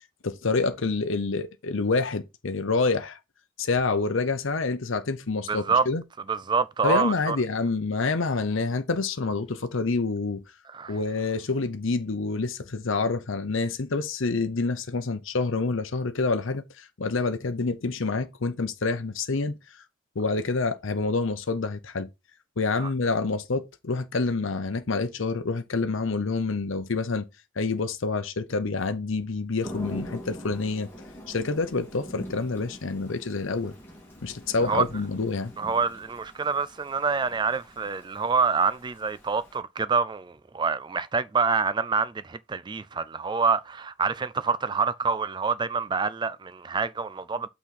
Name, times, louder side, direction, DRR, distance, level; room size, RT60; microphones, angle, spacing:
voice 1, 0.2-3.2 3.6-6.0 6.8-10.4 10.9-19.8 20.2-22.1 22.6-27.2 27.6-30.9 31.3-33.8 34.2-35.5, left 3 dB, 65° left, 0.8 m, -27 dB
voice 2, 5.5-5.9 6.3-7.4 10.7-11.0 22.8-22.9 34.6-34.9 35.6-47.5, right 5 dB, 20° right, 0.3 m, -26 dB
Thunder / Rain, 29.6-39.6, equal, 10° left, 2.2 m, -43 dB
5.9 x 4.1 x 5.8 m
head